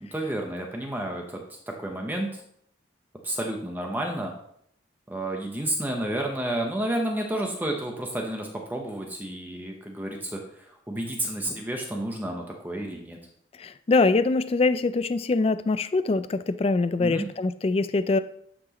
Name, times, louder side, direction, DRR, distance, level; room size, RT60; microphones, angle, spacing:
voice 1, 0.0-2.4 3.2-4.3 5.1-13.2 17.0-17.3, right 1 dB, 10° right, 1 dB, 0.8 m, -31 dB
voice 2, 13.6-18.2, left 3 dB, 30° left, 13 dB, 0.3 m, -23 dB
9.7 x 6.0 x 3.0 m, 0.69 s
head